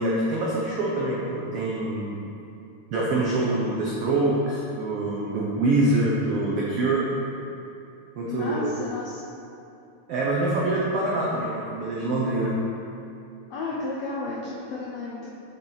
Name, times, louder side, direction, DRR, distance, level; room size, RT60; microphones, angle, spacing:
voice 1, 0.0-2.2 2.9-7.1 8.2-8.7 10.1-12.5, right 2 dB, 90° right, -5 dB, 1.3 m, -25 dB
voice 2, 8.2-9.2 13.5-15.3, left 3 dB, 80° left, -5 dB, 1.5 m, -32 dB
7.6 x 6.9 x 4.0 m, 2.8 s
omnidirectional pair, 4.0 m